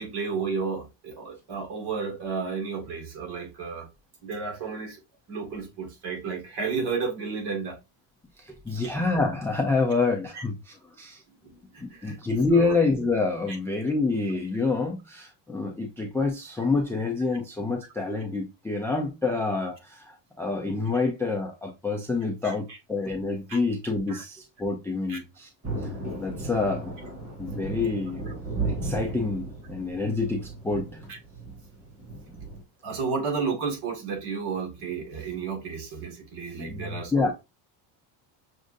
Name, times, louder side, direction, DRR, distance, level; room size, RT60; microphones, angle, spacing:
voice 1, 0.0-3.9 4.2-5.0 5.3-7.8 8.8-8.9 10.3-10.4 11.4-12.2 12.5-12.8 13.5-13.6 22.4-22.8 23.5-23.6 24.1-24.2 25.1-25.2 31.1-31.2 32.8-37.3, right 5 dB, 55° right, 1.9 m, -32 dB
voice 2, 8.4-11.2 11.8-25.5 26.2-27.0 27.4-28.4 28.6-30.9 36.6-37.3, left 3 dB, 5° left, 0.3 m, -27 dB
Thunder, 25.6-32.6, right 3 dB, 30° right, 2.8 m, -35 dB
6.2 x 2.5 x 2.5 m
cardioid pair, 140°, 47 cm